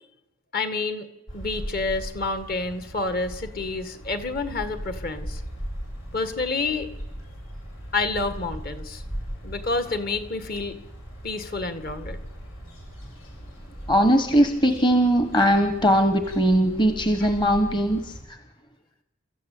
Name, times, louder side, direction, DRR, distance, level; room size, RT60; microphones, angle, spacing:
voice 1, 0.5-1.1 1.3-5.4 6.1-6.9 7.9-9.0 9.4-10.8 11.2-12.2 17.2-17.3, left 3 dB, 45° left, 10 dB, 2.0 m, -28 dB
sound 1, 1.3-18.2, equal, 85° left, 7.9 m, -39 dB
voice 2, 13.9-18.1, equal, 20° left, 8 dB, 1.3 m, -20 dB
29.5 x 14.5 x 8.6 m, 0.98 s
head